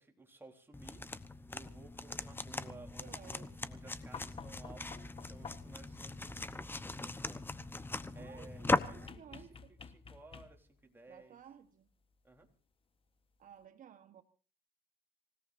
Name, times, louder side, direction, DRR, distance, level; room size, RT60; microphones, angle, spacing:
voice 1, 0.0-7.5 8.1-11.4 12.2-12.5, right 3 dB, 10° right, 2 dB, 3.9 m, -57 dB
sound 1, 0.7-9.1, left 2 dB, 10° left, 1.0 m, -39 dB
voice 2, 2.6-3.5 8.1-9.7 11.1-11.9 13.4-14.2, right 8 dB, 50° right, 8 dB, 1.3 m, -56 dB
sound 2, 4.1-5.9 9.1-10.8 12.3-12.4, left 6 dB, 35° left, 1.3 m, -50 dB
26.5 x 17.5 x 2.7 m, 0.38 s
cardioid pair, 110°, 17 cm